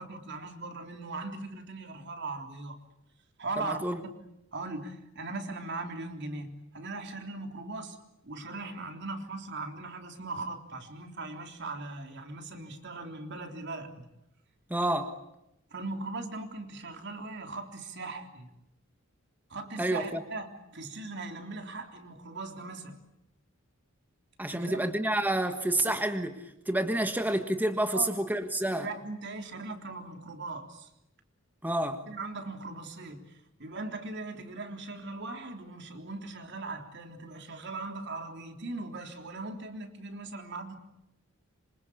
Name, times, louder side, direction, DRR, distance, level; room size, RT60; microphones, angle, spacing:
voice 1, 0.0-2.8 3.4-3.8 4.5-8.0 8.2-14.1 15.7-18.5 19.5-23.0 24.5-24.8 27.9-28.1 28.6-30.9 32.1-33.3 33.6-40.8, right 3 dB, 60° right, 5 dB, 3.5 m, -39 dB
voice 2, 3.6-4.0 14.7-15.2 19.8-20.2 24.4-28.9 31.6-32.0, right 1 dB, 10° right, 7 dB, 1.5 m, -29 dB
26.5 x 25.5 x 8.5 m, 0.87 s
head